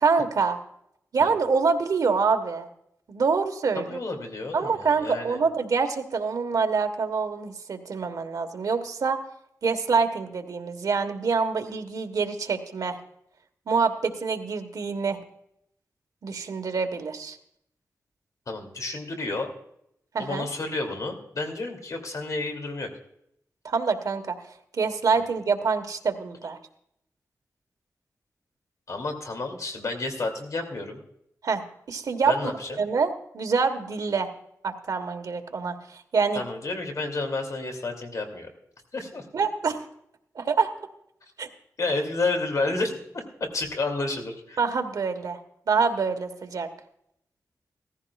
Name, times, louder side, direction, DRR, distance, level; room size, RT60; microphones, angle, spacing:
voice 1, 0.0-0.6 1.1-2.7 3.1-4.0 4.5-9.2 9.6-13.0 13.7-15.2 16.2-17.4 20.1-20.5 23.6-24.4 24.7-26.6 31.4-31.6 31.9-32.3 32.8-34.3 34.6-36.4 39.3-39.8 40.3-40.7 41.4-41.5 44.6-45.4 45.7-46.7, right 5 dB, 85° right, 6 dB, 1.3 m, -26 dB
voice 2, 3.7-5.4 18.5-19.5 20.2-22.9 28.9-31.0 32.2-32.8 36.3-38.5 38.9-39.2 41.8-43.0 43.4-44.6, left 3 dB, 65° left, 4 dB, 2.6 m, -30 dB
17.0 x 14.5 x 2.4 m, 0.74 s
wide cardioid pair, 100°, 6 cm